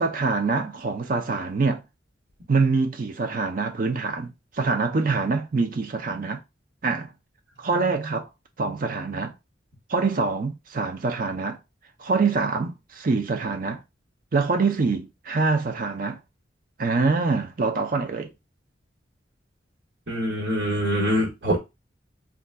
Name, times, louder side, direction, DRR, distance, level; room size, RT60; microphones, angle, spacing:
voice 1, 0.0-1.8 2.5-6.4 6.8-7.1 7.6-8.3 8.6-9.3 9.9-11.6 12.0-13.8 14.3-16.2 16.8-18.3, right 4 dB, 50° right, 0.5 m, -25 dB
voice 2, 20.1-21.6, equal, 65° right, 1.4 m, -24 dB
3.8 x 2.4 x 2.3 m
head